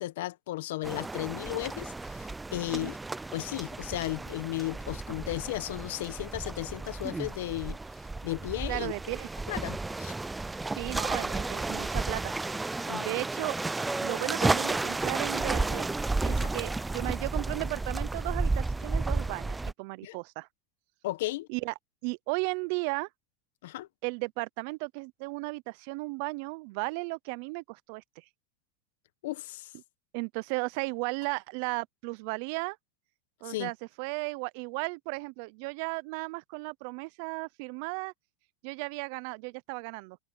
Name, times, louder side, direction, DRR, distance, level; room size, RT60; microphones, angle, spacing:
voice 1, 0.0-3.0 3.3-7.8 8.2-8.9 9.5-10.1 12.9-13.0 16.3-16.5 20.0-20.1 21.0-21.5 23.6-23.9 29.2-29.7 33.4-33.7, left 17 dB, 80° left, 1.3 m, -35 dB
sound 1, 0.8-19.7, right 3 dB, 10° right, 0.4 m, -32 dB
voice 2, 8.7-9.3 10.7-12.3 12.6-13.5 14.0-15.9 16.2-20.5 21.5-21.7 22.0-23.1 24.0-28.2 30.1-32.8 33.4-38.1 38.6-40.2, right 28 dB, 65° right, 0.6 m, -35 dB
supercardioid pair, 110°, 0 cm